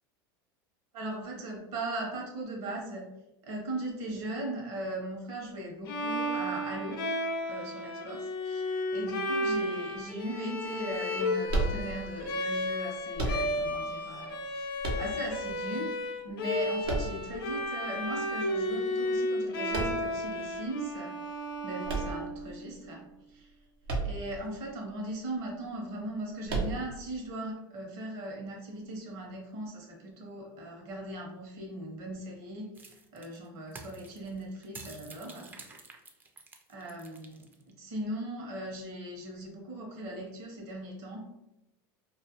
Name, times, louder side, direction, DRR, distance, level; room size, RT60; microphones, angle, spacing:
voice 1, 0.9-3.1 3.4-7.0 7.4-15.9 16.2-21.2 21.6-23.5 24.0-35.5 36.7-41.3, right 1 dB, 60° right, 0 dB, 0.8 m, -39 dB
Bowed string instrument, 5.9-22.8, left 1 dB, 90° left, 0.5 m, -33 dB
sound 1, 11.5-12.3 13.1-13.8 14.8-15.5 16.8-17.6 19.7-20.3 21.8-22.7 23.8-24.4 24.7-24.8 26.5-27.1, right 2 dB, 90° right, 0.6 m, -32 dB
sound 2, 32.7-37.7, right 3 dB, 15° right, 0.3 m, -49 dB
2.4 x 2.1 x 2.7 m, 0.92 s
supercardioid pair, 115°, 12 cm